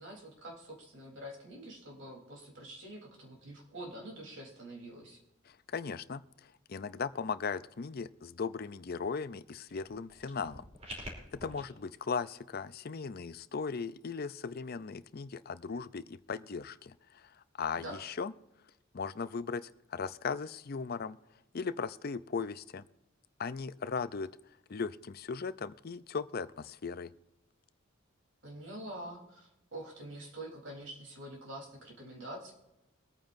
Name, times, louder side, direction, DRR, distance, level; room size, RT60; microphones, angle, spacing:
voice 1, 0.0-5.2 17.8-18.0 28.4-32.5, right 1 dB, 60° right, -1 dB, 3.6 m, -46 dB
voice 2, 5.5-10.7 11.3-17.3 17.6-18.3 18.9-21.2 21.5-22.8 23.4-24.3 24.7-27.1, left 5 dB, 45° left, 14 dB, 0.5 m, -38 dB
sound 1, 9.7-11.6, equal, 30° right, 3.2 m, -46 dB
23.5 x 9.0 x 2.6 m, 0.95 s
head